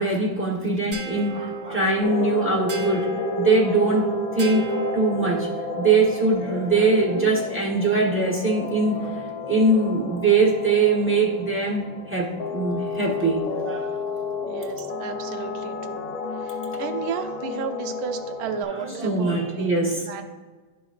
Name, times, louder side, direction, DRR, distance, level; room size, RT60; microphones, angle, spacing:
voice 1, 0.0-3.1 3.4-4.6 4.9-5.5 5.8-14.0 18.6-20.1, right 3 dB, 10° right, -5 dB, 0.7 m, -22 dB
sound 1, 0.9-5.7, right 4 dB, 80° right, 2.7 m, -30 dB
sound 2, 2.0-18.6, left 4 dB, 80° left, 1.6 m, -32 dB
voice 2, 14.4-16.1 16.4-19.7 20.1-20.2, right 7 dB, 65° right, 6 dB, 1.0 m, -33 dB
11.0 x 4.9 x 2.4 m, 1.4 s
omnidirectional pair, 2.1 m